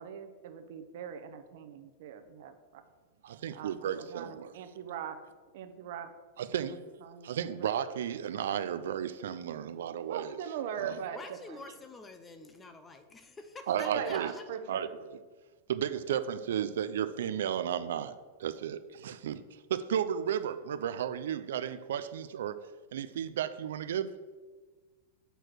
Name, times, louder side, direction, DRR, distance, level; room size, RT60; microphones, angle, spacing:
voice 1, 0.0-2.8 3.5-5.2 5.5-6.1 6.6-7.8 10.1-11.2 11.5-11.6 13.7-14.8, right 8 dB, 65° right, 8 dB, 0.8 m, -40 dB
voice 2, 3.2-4.5 6.4-6.8 7.2-10.4 10.8-11.0 13.7-14.3 14.7-15.2 15.7-19.4 19.7-22.6 22.9-24.1, right 9 dB, 85° right, 12 dB, 0.4 m, -33 dB
voice 3, 11.1-14.5, left 3 dB, 15° left, 8 dB, 0.6 m, -48 dB
6.7 x 4.5 x 6.1 m, 1.4 s
supercardioid pair, 140°, 0 cm